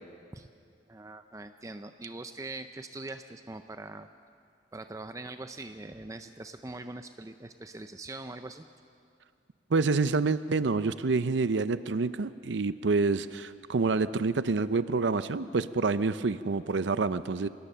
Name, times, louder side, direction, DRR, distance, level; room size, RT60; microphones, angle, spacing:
voice 1, 0.9-4.1 4.7-8.6, right 2 dB, 20° right, 9 dB, 0.5 m, -42 dB
voice 2, 9.7-17.5, right 4 dB, 85° right, 13 dB, 0.6 m, -27 dB
25.5 x 18.5 x 6.8 m, 2.4 s
head